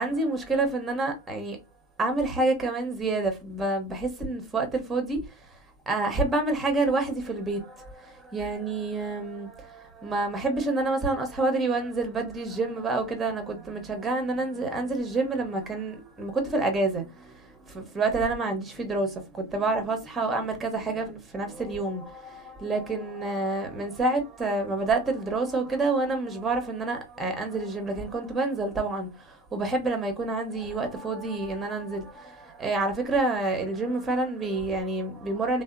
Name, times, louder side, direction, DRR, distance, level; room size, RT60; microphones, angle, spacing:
voice 1, 0.0-1.6 2.0-5.6 5.9-35.6, right 2 dB, 15° right, 0.7 m, -28 dB
2.7 x 2.0 x 2.4 m
hypercardioid pair, 120°, 0 cm